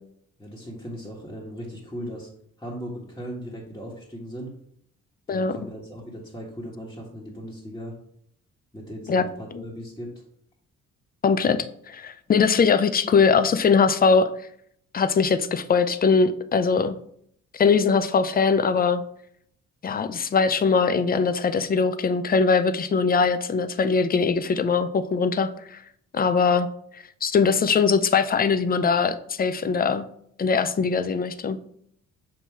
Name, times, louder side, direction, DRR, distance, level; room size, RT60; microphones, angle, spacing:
voice 1, 0.4-2.3 2.6-4.5 5.3-7.9 8.7-10.1, equal, 10° left, -5 dB, 1.4 m, -37 dB
voice 2, 11.2-14.3 14.9-17.0 17.5-19.0 19.8-25.8 26.1-26.7 27.2-30.1 30.4-31.6, left 5 dB, 30° left, 11 dB, 0.5 m, -21 dB
7.3 x 2.8 x 4.6 m, 0.68 s
cardioid pair, 90°, 30 cm